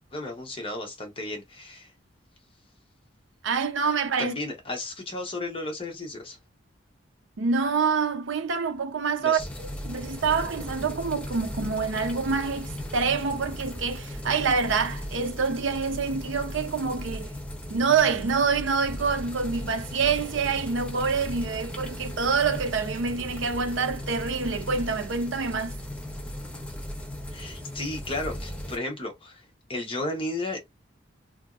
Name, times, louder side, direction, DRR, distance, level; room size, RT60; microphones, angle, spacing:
voice 1, 0.1-1.9 4.2-6.4 9.2-9.5 27.3-29.4 29.7-30.7, left 2 dB, 25° left, 0.8 m, -34 dB
voice 2, 3.4-4.3 7.4-17.3 17.7-25.8, right 5 dB, 80° right, 0.5 m, -26 dB
sound 1, 9.4-28.8, left 1 dB, 5° left, 0.5 m, -37 dB
2.8 x 2.6 x 2.3 m
head